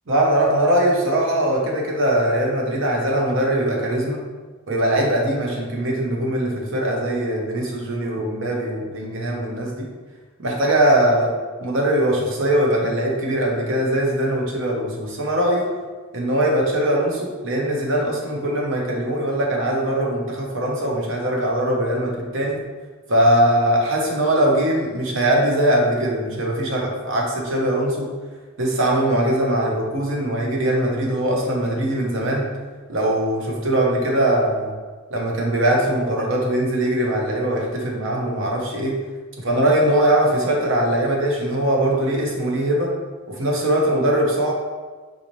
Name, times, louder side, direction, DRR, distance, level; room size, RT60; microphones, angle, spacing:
voice 1, 0.1-4.2 4.7-9.9 10.4-11.3 11.6-15.7 16.1-22.6 23.1-28.1 28.6-32.5 32.9-34.7 35.1-39.0 39.4-42.9 43.3-44.5, right 1 dB, 60° right, -2 dB, 0.7 m, -21 dB
3.9 x 2.6 x 3.0 m, 1.4 s
head